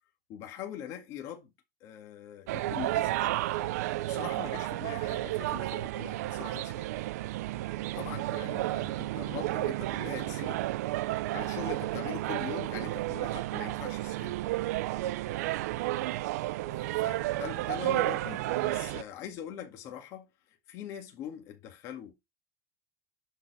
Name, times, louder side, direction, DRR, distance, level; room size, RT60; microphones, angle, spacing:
voice 1, 0.3-1.5 1.8-3.5 3.8-6.8 7.9-10.6 11.3-14.4 16.7-20.3 20.7-22.1, left 10 dB, 35° left, 1.9 m, -42 dB
sound 1, 2.5-19.0, right 16 dB, 80° right, 0.6 m, -32 dB
11.0 x 4.6 x 4.8 m
supercardioid pair, 175°, 8 cm